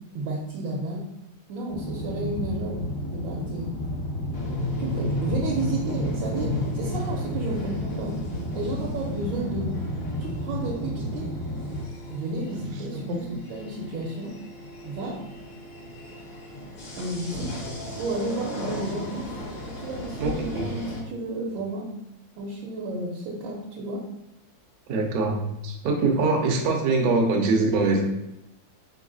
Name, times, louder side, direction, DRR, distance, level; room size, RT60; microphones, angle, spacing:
voice 1, 0.1-1.0 1.5-2.8 3.1-3.7 4.8-8.1 8.5-9.7 10.2-11.3 12.1-14.3 14.8-15.2 17.0-17.5 17.9-19.2 19.6-21.9 22.4-24.0, right 2 dB, 80° right, -3 dB, 1.5 m, -32 dB
sound 1, 1.7-11.8, equal, 20° left, 0.7 m, -32 dB
sound 2, 4.3-21.0, left 1 dB, 70° left, 1.7 m, -35 dB
voice 2, 12.9-13.2 20.2-20.7 24.9-28.0, right 3 dB, 60° right, 2 dB, 1.0 m, -24 dB
4.0 x 3.0 x 3.8 m, 0.86 s
omnidirectional pair, 2.1 m